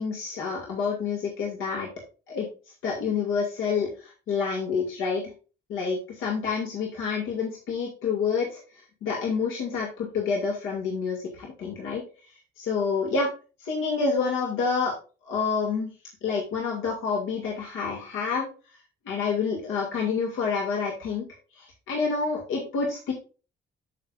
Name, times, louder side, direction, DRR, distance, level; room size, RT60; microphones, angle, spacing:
voice 1, 0.0-1.9 2.3-2.5 2.8-5.2 5.7-8.6 9.0-12.0 12.6-13.3 13.6-14.9 15.2-15.9 16.2-18.5 19.0-21.2 21.5-23.1, left 5 dB, 90° left, -1 dB, 2.5 m, -28 dB
13.0 x 5.5 x 2.5 m, 0.34 s
cardioid pair, 90°, 20 cm